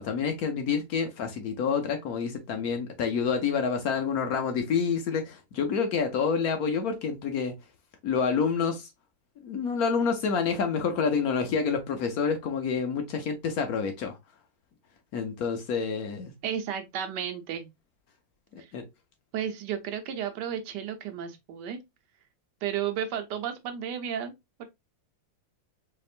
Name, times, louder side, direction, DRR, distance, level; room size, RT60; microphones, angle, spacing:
voice 1, 0.0-7.5 8.0-8.9 9.4-14.2 15.1-16.3 18.5-18.8, left 6 dB, 65° left, 1.0 m, -28 dB
voice 2, 16.4-17.7 18.6-18.7 19.3-21.8 22.6-24.3 24.6-24.7, right 9 dB, 70° right, 1.3 m, -33 dB
4.3 x 2.9 x 2.4 m
omnidirectional pair, 2.0 m